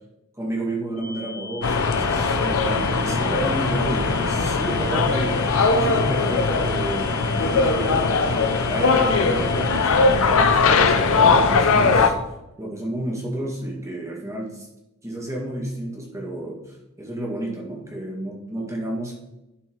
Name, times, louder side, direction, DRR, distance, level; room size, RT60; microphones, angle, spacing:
voice 1, 0.4-8.1 8.7-12.1 12.6-14.7 15.0-19.2, right 1 dB, 15° right, -2 dB, 1.9 m, -31 dB
sound 1, 1.0-10.1, left 4 dB, 90° left, 2.0 m, -38 dB
sound 2, 1.6-12.1, left 4 dB, 70° left, 0.7 m, -20 dB
11.0 x 4.5 x 4.6 m, 0.92 s
head